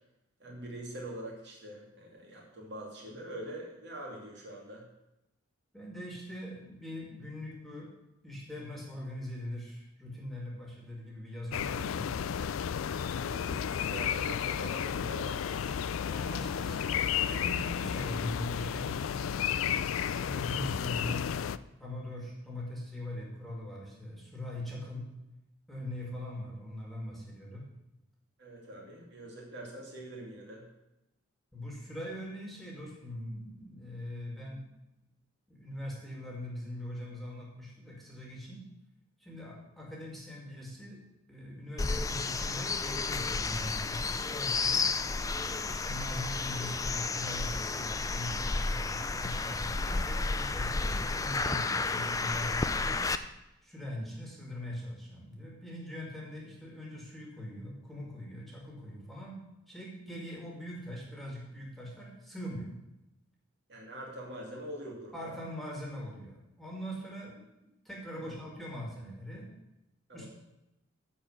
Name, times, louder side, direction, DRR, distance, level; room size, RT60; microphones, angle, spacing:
voice 1, 0.4-4.8 13.1-15.6 28.4-30.7 63.7-65.3 68.1-68.3 70.1-70.3, right 1 dB, 60° right, -2 dB, 2.8 m, -44 dB
voice 2, 5.7-7.9 8.2-12.1 16.0-21.3 21.8-25.0 25.7-27.7 31.5-34.6 35.5-38.6 39.2-41.0 41.3-44.9 45.6-53.0 53.6-59.4 59.7-62.7 65.1-67.4 67.8-69.5 70.1-70.3, left 1 dB, ahead, -3 dB, 2.2 m, -41 dB
sound 1, 11.5-21.6, left 8 dB, 85° left, 0.4 m, -32 dB
sound 2, 41.8-53.1, left 3 dB, 15° left, 0.4 m, -32 dB
11.0 x 4.5 x 8.0 m, 0.92 s
head